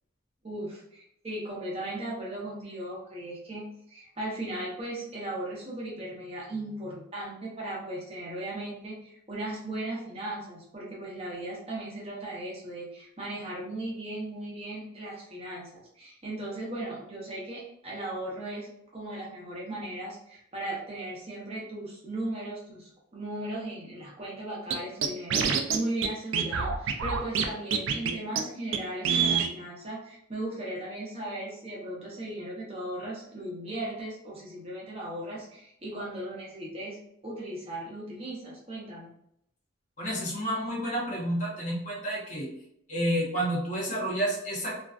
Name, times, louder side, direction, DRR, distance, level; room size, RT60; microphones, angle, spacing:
voice 1, 0.4-37.0 37.2-39.1, right 1 dB, 30° right, -4 dB, 0.7 m, -37 dB
Scratching (performance technique), 24.7-24.8 25.0-25.8 26.0-26.1 26.3-27.5 27.7-28.1 28.4-28.5 28.7-28.8 29.0-29.5, right 6 dB, 70° right, 0.3 m, -25 dB
voice 2, 40.0-42.5 42.9-44.8, right 1 dB, 35° left, -3 dB, 0.7 m, -30 dB
2.4 x 2.2 x 2.3 m, 0.74 s
head